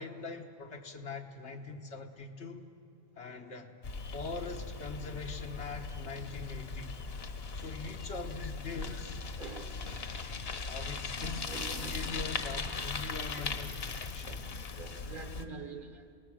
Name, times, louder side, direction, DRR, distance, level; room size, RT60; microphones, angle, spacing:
voice 1, 0.0-2.7 3.1-3.7 4.1-7.0 7.5-9.2 10.6-14.4, left 4 dB, 85° left, 3 dB, 1.5 m, -42 dB
Bicycle, 3.8-15.4, left 4 dB, 65° left, 1.3 m, -39 dB
voice 2, 9.4-10.1 11.4-12.2 14.8-16.1, right 4 dB, 50° right, 7 dB, 1.3 m, -46 dB
28.5 x 18.5 x 6.3 m, 2.4 s
omnidirectional pair, 1.1 m